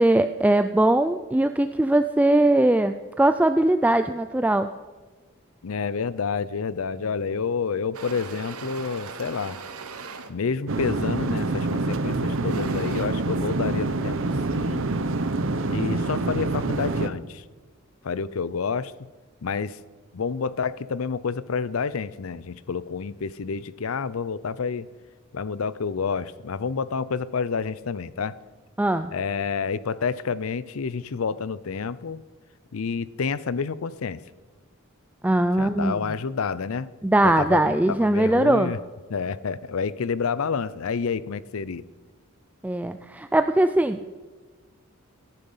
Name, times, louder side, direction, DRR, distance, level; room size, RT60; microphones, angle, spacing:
voice 1, 0.0-4.7 28.8-29.1 35.2-36.0 37.0-38.7 42.6-44.0, right 1 dB, 5° right, 9 dB, 0.3 m, -20 dB
voice 2, 5.6-9.6 10.3-14.2 14.5-14.9 15.7-17.4 18.0-18.9 19.4-19.8 20.1-24.9 25.3-28.4 29.1-32.2 32.7-34.2 35.6-36.9 37.2-38.8 39.1-41.8, left 5 dB, 70° left, 18 dB, 0.5 m, -29 dB
sound 1, 7.9-10.3 11.2-11.5 12.1-13.1, right 5 dB, 85° right, 1.1 m, -39 dB
sound 2, 10.7-17.1, right 2 dB, 65° right, 0.8 m, -26 dB
15.0 x 11.0 x 5.6 m, 1.3 s
head